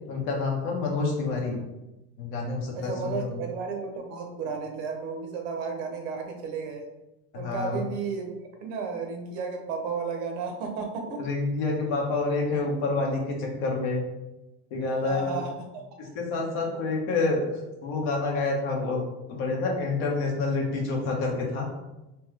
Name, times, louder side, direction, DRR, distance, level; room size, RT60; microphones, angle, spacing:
voice 1, 0.1-1.5 2.2-3.4 7.3-7.8 11.2-14.0 14.7-15.4 16.0-17.4 17.8-19.0 19.3-21.7, left 3 dB, 60° left, 0 dB, 1.1 m, -28 dB
voice 2, 2.7-6.8 7.3-11.2 14.8-15.8, right 5 dB, 55° right, 3 dB, 0.8 m, -33 dB
3.5 x 3.2 x 3.2 m, 0.97 s
cardioid pair, 170°, 35 cm